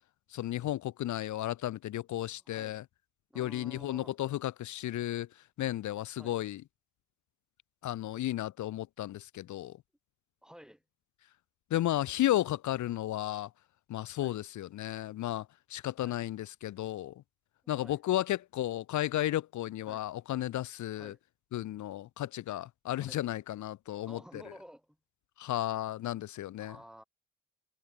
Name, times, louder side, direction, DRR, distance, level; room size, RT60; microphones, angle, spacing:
voice 1, 0.3-2.8 3.3-6.6 7.8-9.8 11.7-13.5 13.9-17.2 17.7-21.1 21.5-24.4 25.4-26.8, left 14 dB, 70° left, 1.1 m, -33 dB
voice 2, 3.3-4.2 6.2-6.4 10.4-10.8 14.2-14.3 16.0-16.1 17.6-18.0 19.9-20.0 21.0-21.2 23.0-23.2 24.0-25.0 26.6-27.0, equal, ahead, 5.1 m, -52 dB
cardioid pair, 90°, 30 cm